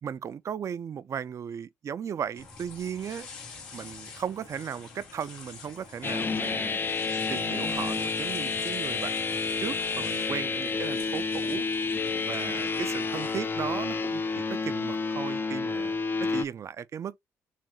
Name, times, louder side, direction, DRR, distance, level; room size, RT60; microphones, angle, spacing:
voice 1, 0.0-3.3 3.7-6.8 7.3-11.7 12.3-14.2 14.5-17.2, right 8 dB, 45° right, 0.3 m, -36 dB
sound 1, 2.3-13.4, left 4 dB, 85° left, 1.6 m, -46 dB
sound 2, 6.0-16.5, left 4 dB, 30° left, 0.4 m, -30 dB
3.4 x 3.2 x 3.0 m
hypercardioid pair, 50°, 7 cm